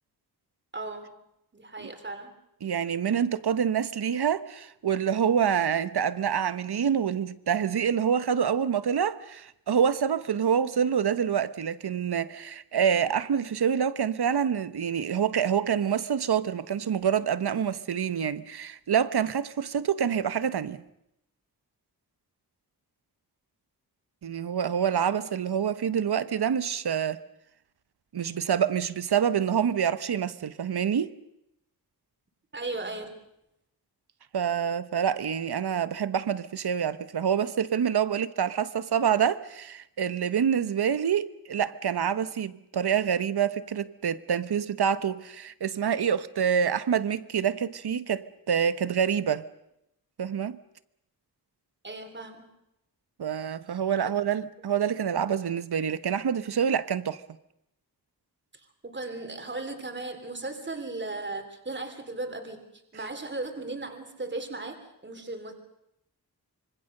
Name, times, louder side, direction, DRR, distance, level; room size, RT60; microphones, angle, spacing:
voice 1, 0.7-1.1 1.5-2.3 32.5-33.1 51.8-52.5 54.0-54.1 58.8-62.6 62.9-64.8 65.0-65.5, right 2 dB, 30° right, 3.2 m, -36 dB
voice 2, 2.6-20.8 24.2-27.2 28.1-31.1 34.3-49.5 50.2-50.6 53.2-57.2, right 8 dB, 80° right, 1.1 m, -27 dB
26.0 x 24.5 x 6.7 m
wide cardioid pair, 140°, 38 cm